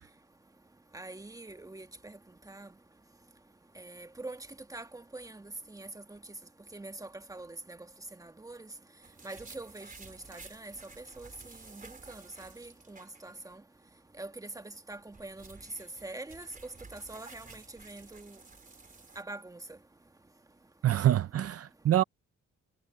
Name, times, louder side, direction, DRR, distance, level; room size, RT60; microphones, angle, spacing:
voice 1, 0.9-2.2 2.5-2.7 3.8-6.2 6.7-7.8 8.2-8.7 9.2-13.6 14.2-15.6 16.0-16.5 16.9-18.4 19.1-19.6, right 2 dB, 10° right, 1.5 m, -45 dB
sound 1, 9.0-13.5 13.8-13.9 14.8-19.2, right 4 dB, 25° right, 4.2 m, -53 dB
voice 2, 20.8-22.0, right 12 dB, 50° right, 0.7 m, -25 dB
cardioid pair, 90°, 30 cm